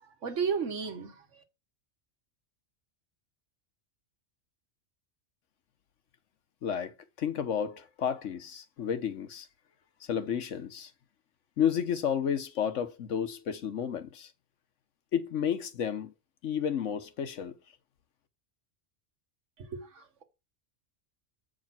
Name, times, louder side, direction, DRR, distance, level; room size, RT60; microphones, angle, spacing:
voice 1, 0.0-1.4 19.6-20.2, right 6 dB, 85° right, 1.6 m, -34 dB
voice 2, 6.6-9.5 10.1-10.9 11.6-14.3 15.1-16.1 16.4-17.5, left 8 dB, 85° left, 1.3 m, -31 dB
7.9 x 5.0 x 5.8 m
omnidirectional pair, 1.2 m